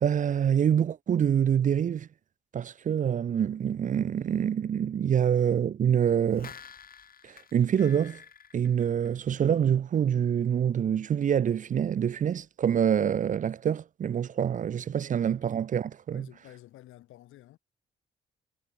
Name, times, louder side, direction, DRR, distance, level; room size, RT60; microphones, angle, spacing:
voice 1, 0.0-2.1 2.5-6.5 7.2-8.2 8.5-16.3, right 8 dB, 40° right, 0.5 m, -26 dB
sound 1, 6.1-9.6 9.9-10.0, left 7 dB, 45° left, 7.2 m, -50 dB
voice 2, 16.1-17.6, left 15 dB, 85° left, 5.9 m, -51 dB
cardioid pair, 90°, 20 cm